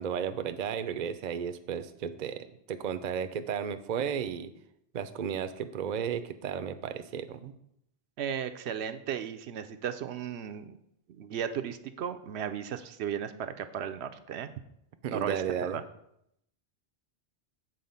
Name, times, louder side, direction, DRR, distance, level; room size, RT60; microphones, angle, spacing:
voice 1, 0.0-4.5 4.9-7.5 15.0-15.8, right 8 dB, 55° right, 10 dB, 0.6 m, -34 dB
voice 2, 8.2-10.8 11.1-14.5 15.1-15.8, right 8 dB, 85° right, 9 dB, 0.9 m, -35 dB
7.8 x 4.1 x 5.4 m, 0.75 s
omnidirectional pair, 1.1 m